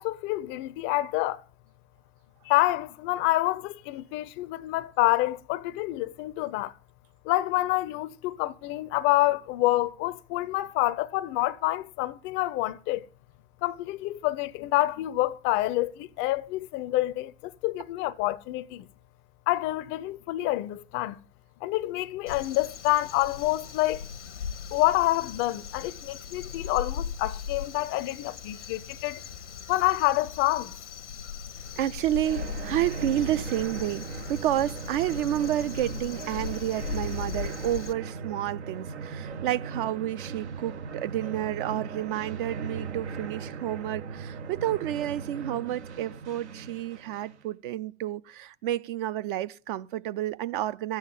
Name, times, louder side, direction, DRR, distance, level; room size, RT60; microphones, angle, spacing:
voice 1, 0.0-1.4 2.5-6.7 7.2-13.1 13.6-18.9 19.5-21.2 21.6-24.0 24.7-29.2 29.7-30.7, left 17 dB, 35° left, 0.5 m, -27 dB
Crow, 22.3-37.9, left 7 dB, 85° left, 0.9 m, -39 dB
sound 1, 31.6-47.4, right 5 dB, 75° right, 1.0 m, -38 dB
voice 2, 31.8-51.0, right 13 dB, 50° right, 0.6 m, -30 dB
13.0 x 8.7 x 7.2 m
figure-of-eight pair, 90°, 34 cm